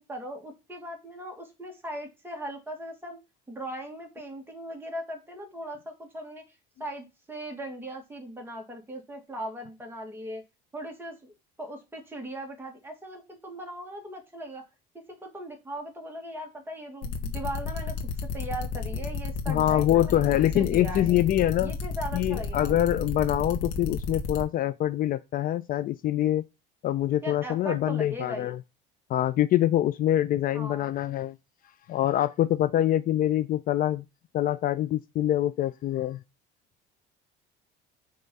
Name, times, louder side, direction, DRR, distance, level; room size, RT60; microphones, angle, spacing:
voice 1, 0.0-3.2 3.5-6.4 6.8-10.4 10.7-14.6 14.9-20.2 20.5-21.2 21.6-22.8 27.2-28.6 30.5-30.9, right 1 dB, 10° right, 2.1 m, -39 dB
sound 1, 17.0-24.4, left 4 dB, 85° left, 1.6 m, -32 dB
voice 2, 19.5-21.7 22.1-26.4 26.8-28.6 29.1-31.3 31.9-34.0 34.3-36.2, left 13 dB, 45° left, 0.4 m, -25 dB
5.7 x 3.2 x 5.3 m
cardioid pair, 125°, 20 cm